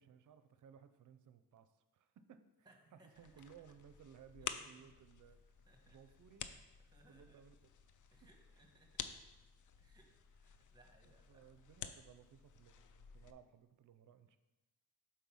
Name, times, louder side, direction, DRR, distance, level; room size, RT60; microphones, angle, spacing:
voice 1, 0.0-2.5 2.9-6.5 7.1-7.5 11.0-14.4, right 8 dB, 55° right, 11 dB, 0.5 m, -61 dB
voice 2, 2.6-3.3 4.4-4.8 5.7-6.0 6.3-6.4 6.8-7.4 8.1-9.1 9.8-11.4, right 2 dB, 10° right, 2 dB, 1.2 m, -68 dB
sound 1, 3.1-13.3, left 8 dB, 55° left, 0.5 m, -51 dB
5.3 x 4.4 x 6.1 m, 1.1 s
wide cardioid pair, 130°, 38 cm